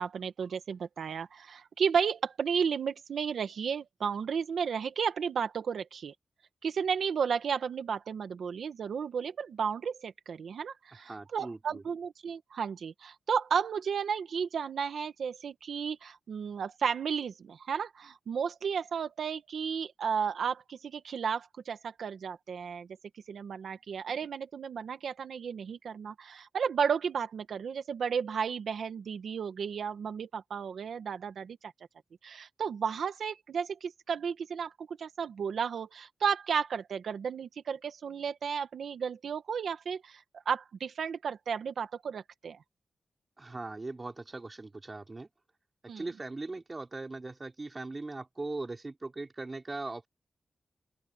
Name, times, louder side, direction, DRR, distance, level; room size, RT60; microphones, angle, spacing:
voice 1, 0.0-6.1 6.6-22.9 23.3-31.6 32.2-42.6 45.9-46.0, right 6 dB, 80° right, 1.4 m, -33 dB
voice 2, 11.1-11.8 43.4-45.3 46.0-50.1, right 3 dB, 30° right, 3.7 m, -39 dB
open air
wide cardioid pair, 110°, 0 cm